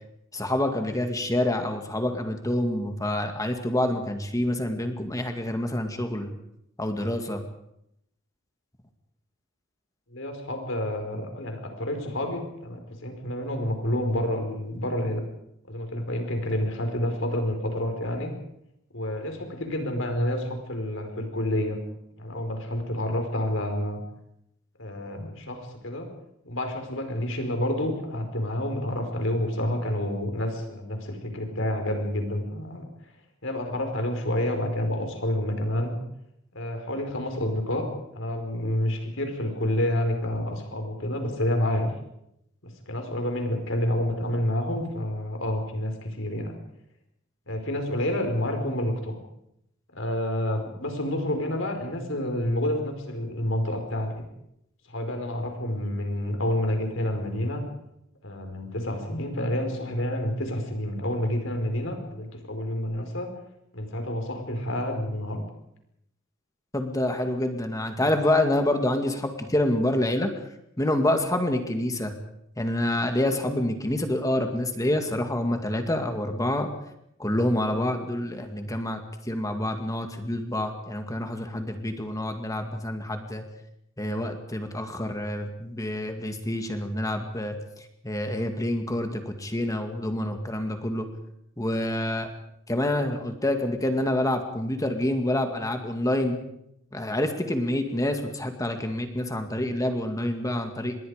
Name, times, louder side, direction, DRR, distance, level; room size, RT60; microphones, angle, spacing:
voice 1, 0.3-6.3 6.8-7.4 66.7-70.3 70.8-72.1 72.6-76.7 77.2-79.0 79.3-83.4 84.0-87.6 88.0-91.1 91.6-92.3 92.7-96.4 96.9-101.0, left 1 dB, 15° left, 6 dB, 2.1 m, -27 dB
voice 2, 10.1-15.2 15.7-18.3 18.9-21.8 22.2-24.0 24.8-26.1 26.4-32.8 33.4-36.0 36.5-37.8 38.1-41.9 42.6-46.5 47.5-49.2 49.9-54.3 54.9-57.6 58.2-63.3 63.7-65.4, left 1 dB, 75° left, 5 dB, 4.9 m, -29 dB
26.0 x 21.5 x 5.1 m, 0.78 s
head